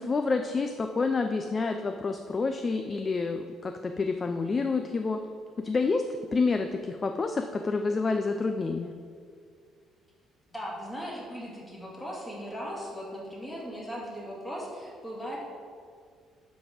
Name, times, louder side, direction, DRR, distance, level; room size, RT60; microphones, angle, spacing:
voice 1, 0.0-5.2 5.6-6.0 6.3-8.9, left 4 dB, 25° left, 6 dB, 0.4 m, -28 dB
voice 2, 10.5-15.4, equal, 10° left, -5 dB, 2.1 m, -38 dB
11.5 x 4.1 x 5.0 m, 2.1 s
cardioid pair, 140°, 0 cm